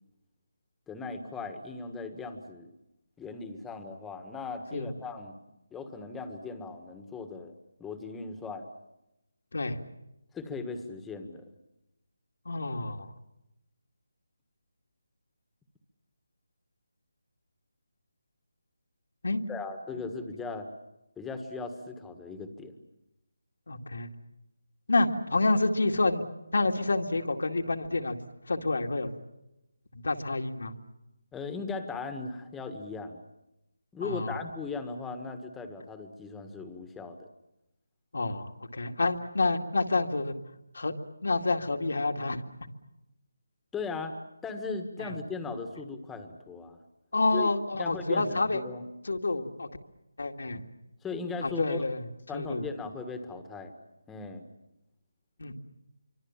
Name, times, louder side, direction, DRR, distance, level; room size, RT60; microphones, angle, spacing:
voice 1, 0.9-2.7 3.2-5.4 5.7-7.5 7.8-8.7 10.3-11.5 19.5-20.7 21.2-22.8 31.3-33.2 33.9-37.3 43.7-44.2 44.4-46.8 47.3-47.5 47.8-48.9 51.0-51.8 52.3-53.7 54.1-54.4, left 4 dB, 5° left, 7 dB, 1.6 m, -38 dB
voice 2, 12.5-13.1 19.2-19.4 23.7-24.1 24.9-26.3 26.5-28.2 28.5-29.1 29.9-30.7 34.0-34.4 38.1-40.3 40.7-40.9 41.2-42.4 45.0-45.1 47.1-48.6 49.0-49.7 50.2-50.6 51.4-52.0 52.3-52.6 55.4-55.6, left 2 dB, 75° left, 4 dB, 2.2 m, -28 dB
26.5 x 24.5 x 7.3 m, 0.92 s
figure-of-eight pair, 165°, 0 cm